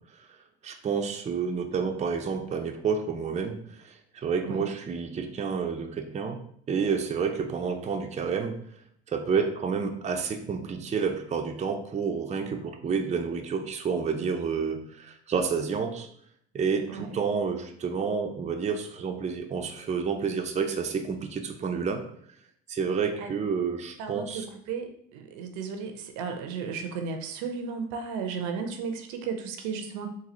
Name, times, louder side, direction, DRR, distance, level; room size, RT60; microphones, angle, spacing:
voice 1, 0.6-3.9 4.2-6.4 6.7-8.6 9.1-16.1 16.5-22.0 22.7-24.4, right 5 dB, 25° right, 5 dB, 0.5 m, -29 dB
voice 2, 24.0-30.1, right 5 dB, 70° right, 6 dB, 0.6 m, -34 dB
3.8 x 2.6 x 2.9 m, 0.66 s
hypercardioid pair, 65°, 30 cm